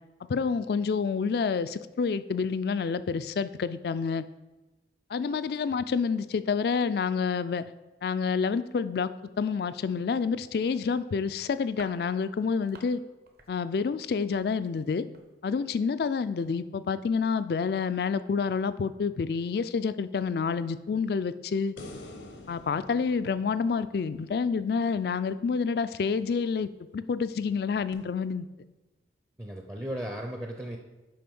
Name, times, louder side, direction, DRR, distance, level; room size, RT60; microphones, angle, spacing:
voice 1, 0.3-4.2 5.1-7.6 8.0-9.1 9.4-13.0 13.5-15.1 15.4-21.8 22.5-28.5, left 5 dB, 55° left, 14 dB, 0.3 m, -28 dB
sound 1, 11.3-13.0 13.3-13.5 13.8-15.3 15.6-15.7 16.0-16.2 16.4-16.6, right 3 dB, 55° right, 0.9 m, -53 dB
sound 2, 21.8-25.1 27.9-28.0, left 2 dB, 85° left, 1.0 m, -47 dB
voice 2, 29.4-30.8, equal, 15° right, 2 dB, 0.5 m, -36 dB
7.7 x 5.0 x 5.3 m, 1.1 s
head